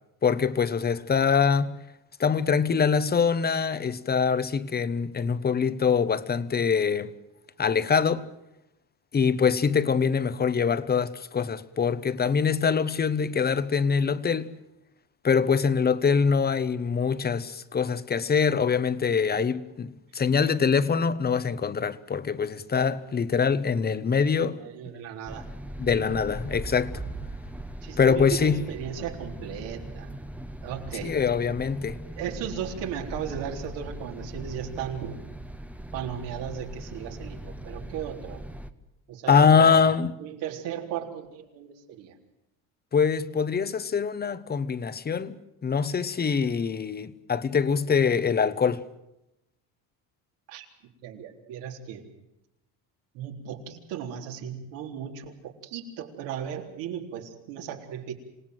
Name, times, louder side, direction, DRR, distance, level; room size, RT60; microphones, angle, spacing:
voice 1, 0.2-1.8 2.2-7.1 7.6-8.3 9.1-14.5 15.2-24.6 25.8-27.0 28.0-28.6 31.0-32.0 39.3-40.2 42.9-48.8, left 6 dB, 20° left, 1.0 m, -24 dB
voice 2, 24.4-25.5 27.8-30.2 30.6-31.2 32.1-35.2 35.9-38.4 39.1-39.8 40.2-42.1 50.5-50.7 51.0-52.0 53.1-58.1, right 9 dB, 80° right, 3.9 m, -36 dB
sound 1, 25.3-38.7, right 1 dB, 5° right, 1.0 m, -39 dB
27.0 x 18.0 x 7.9 m
cardioid pair, 115°, 43 cm